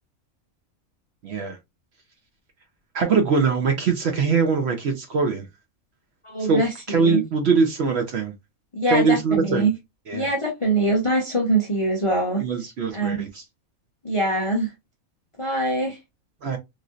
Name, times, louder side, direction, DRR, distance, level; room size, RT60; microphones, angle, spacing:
voice 1, 1.2-1.6 2.9-5.4 6.5-6.6 6.9-8.3 8.9-9.7 10.1-10.3 12.4-13.4 16.4-16.6, right 5 dB, 60° right, 0.7 m, -22 dB
voice 2, 6.2-7.2 8.7-9.7 10.1-12.4 12.9-13.3 14.0-14.7 15.4-16.0, right 2 dB, 35° left, 0.5 m, -23 dB
3.0 x 2.6 x 2.3 m
omnidirectional pair, 1.5 m